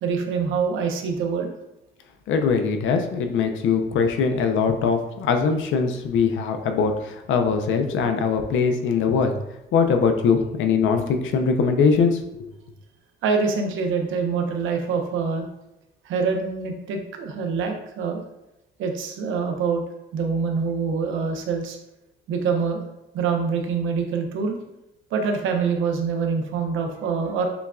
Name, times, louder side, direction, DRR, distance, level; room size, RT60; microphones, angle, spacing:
voice 1, 0.0-1.5 13.2-15.5 16.0-18.2 18.8-19.8 20.1-21.8 22.3-22.8 23.1-24.6 25.1-27.5, right 5 dB, 85° right, 4 dB, 0.7 m, -25 dB
voice 2, 2.3-9.4 9.7-12.5, left 5 dB, 75° left, 6 dB, 0.6 m, -21 dB
7.0 x 2.4 x 2.3 m, 0.89 s
cardioid pair, 90°, 20 cm